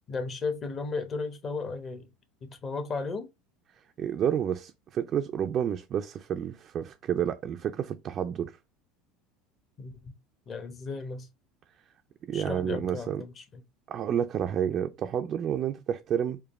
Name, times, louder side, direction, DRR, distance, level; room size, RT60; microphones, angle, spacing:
voice 1, 0.1-2.1 2.5-3.3 9.8-10.1 10.5-11.3 12.3-13.6, left 4 dB, 35° left, 1.0 m, -35 dB
voice 2, 4.0-8.6 12.2-13.2 13.9-16.4, right 9 dB, 45° right, 0.4 m, -30 dB
4.8 x 2.2 x 3.1 m
supercardioid pair, 105°, 0 cm